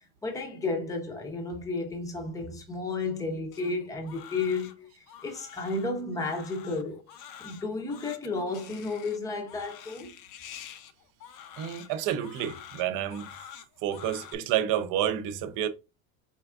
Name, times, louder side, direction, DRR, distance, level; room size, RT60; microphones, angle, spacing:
voice 1, 0.2-7.0 7.4-10.1, left 3 dB, 10° left, 0.6 m, -32 dB
Crying sobbing, 3.5-14.3, left 9 dB, 55° left, 0.6 m, -48 dB
voice 2, 11.6-13.3 13.8-15.7, right 10 dB, 50° right, 0.6 m, -29 dB
4.5 x 3.4 x 2.4 m
cardioid pair, 155°, 40 cm